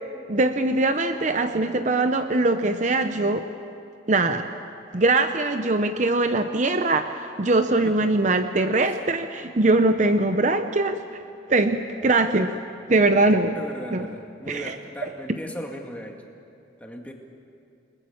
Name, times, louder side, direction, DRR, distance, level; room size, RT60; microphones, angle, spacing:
voice 1, 0.3-3.5 4.1-4.5 4.9-11.0 11.5-12.5 12.9-13.6 13.9-14.1 14.5-14.7, right 2 dB, 40° right, 8 dB, 0.7 m, -22 dB
voice 2, 13.5-16.2 16.8-17.1, equal, 5° left, 1 dB, 2.1 m, -37 dB
29.0 x 20.5 x 7.2 m, 2.5 s
head